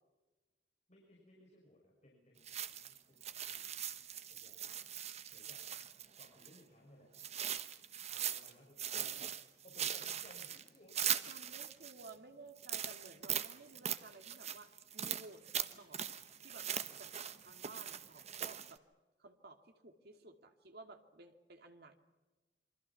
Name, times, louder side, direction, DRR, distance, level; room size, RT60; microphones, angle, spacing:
voice 1, 0.9-3.9 4.3-4.9 5.3-5.6 6.2-7.1 8.1-9.3 9.6-11.3, left 1 dB, 40° left, -1 dB, 5.8 m, -62 dB
sound 1, 2.4-6.6 7.1-8.5 8.8-12.1 12.6-18.8, right 9 dB, 40° right, 1.2 m, -41 dB
voice 2, 11.3-16.0 16.4-16.7 17.0-17.1 17.4-18.8 19.2-22.0, right 3 dB, 60° right, 5 dB, 2.6 m, -55 dB
28.5 x 24.5 x 5.9 m, 1.2 s
head